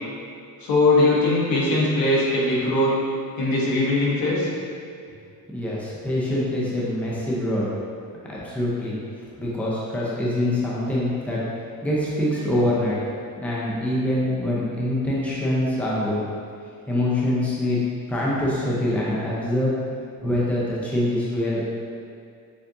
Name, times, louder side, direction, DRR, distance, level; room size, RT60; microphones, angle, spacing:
voice 1, 0.6-3.0 3.4-4.5, left 2 dB, 65° left, -6 dB, 1.2 m, -20 dB
voice 2, 5.5-7.7 8.3-9.0 9.4-11.4 11.8-13.0 13.4-16.2 16.9-17.8 18.1-19.7 20.2-21.6, left 1 dB, 5° left, -7 dB, 0.6 m, -24 dB
6.8 x 2.5 x 2.6 m, 2.3 s
cardioid pair, 155°, 37 cm